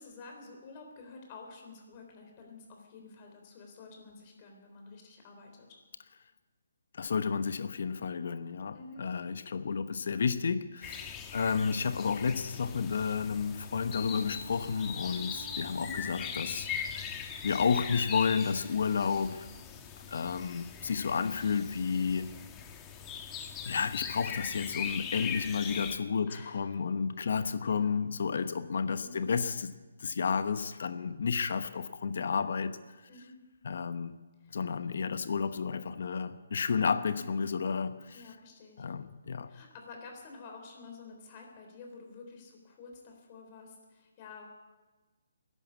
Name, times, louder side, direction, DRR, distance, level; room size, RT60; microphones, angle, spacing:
voice 1, 0.0-5.8 8.7-9.1 15.7-16.0 26.3-26.8 27.2-28.0 29.0-29.3 33.1-33.4 34.4-34.6 38.1-38.9 39.5-44.5, left 4 dB, 35° left, 2 dB, 3.6 m, -50 dB
voice 2, 6.9-17.0 17.4-19.5 20.1-22.3 23.6-29.7 30.0-32.8 33.6-34.2 34.5-38.2 38.8-39.5, left 5 dB, 60° left, 11 dB, 0.9 m, -31 dB
sound 1, 10.8-26.0, left 7 dB, 20° left, 1.3 m, -41 dB
Wind instrument woodwind instrument, 12.1-18.2, right 1 dB, 85° right, 5.4 m, -53 dB
14.5 x 11.5 x 8.5 m, 1.2 s
figure-of-eight pair, 145°, 0 cm